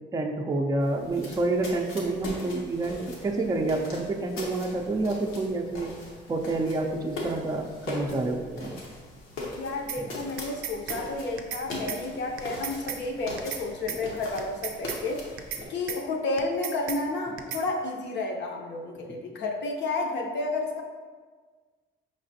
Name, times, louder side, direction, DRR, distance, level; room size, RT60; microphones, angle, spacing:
voice 1, 0.1-5.9 6.3-8.8 10.0-10.2 13.8-14.0, right 2 dB, 20° right, 3 dB, 0.4 m, -28 dB
sound 1, 0.8-15.7, left 2 dB, 90° left, 0.9 m, -40 dB
voice 2, 9.5-15.3 15.7-20.8, left 2 dB, 65° left, 1 dB, 0.7 m, -31 dB
sound 2, 9.9-10.0 10.4-11.0 11.4-11.6 11.9-12.0 12.4-13.0 13.4-13.6 13.9-14.0 14.4-15.0 15.4-15.6 15.9-16.0 16.4-17.0 17.4-17.6, right 8 dB, 90° right, 0.4 m, -34 dB
4.8 x 3.3 x 2.7 m, 1.5 s
cardioid pair, 90°, 20 cm